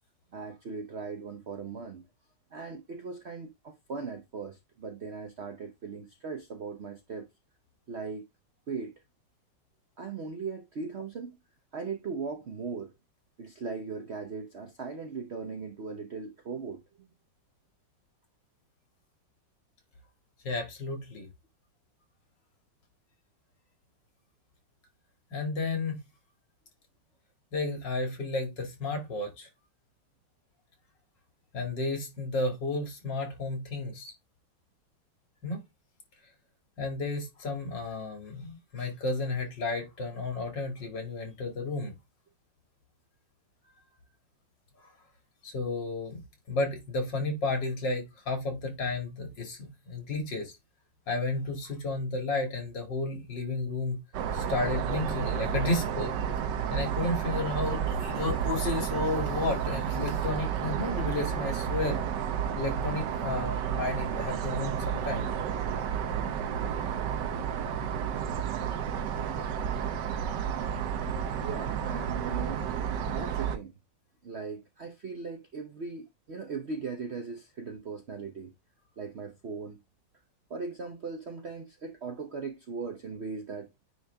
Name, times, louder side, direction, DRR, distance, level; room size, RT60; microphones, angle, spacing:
voice 1, 0.3-2.1 2.5-7.3 7.9-8.2 8.7-9.0 10.0-11.4 11.7-12.9 13.4-17.1 70.5-70.7 71.4-72.6 73.1-73.7 74.2-78.5 79.0-79.8 80.5-83.7, right 4 dB, 50° right, 0.9 m, -39 dB
voice 2, 20.4-21.3 25.3-26.0 27.5-29.5 31.5-34.1 35.4-35.6 36.8-41.9 45.4-46.2 46.5-50.5 51.1-54.0 54.3-56.1 56.7-62.0 62.5-65.3, left 3 dB, 75° left, 3.0 m, -32 dB
sound 1, 54.1-73.6, right 8 dB, 75° right, 1.4 m, -31 dB
9.3 x 3.2 x 3.3 m
omnidirectional pair, 2.0 m